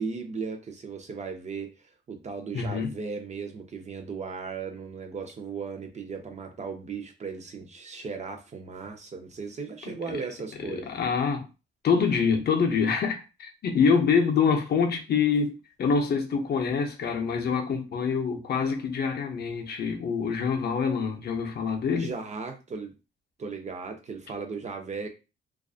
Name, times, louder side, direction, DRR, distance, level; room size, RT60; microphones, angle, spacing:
voice 1, 0.0-1.7 2.1-10.9 21.9-22.9 23.4-25.1, right 5 dB, 35° right, 0.5 m, -36 dB
voice 2, 2.5-2.9 9.9-10.2 10.7-11.5 11.8-15.5 15.8-22.1, left 5 dB, 50° left, 0.5 m, -25 dB
2.5 x 2.3 x 2.3 m
cardioid pair, 135°, 21 cm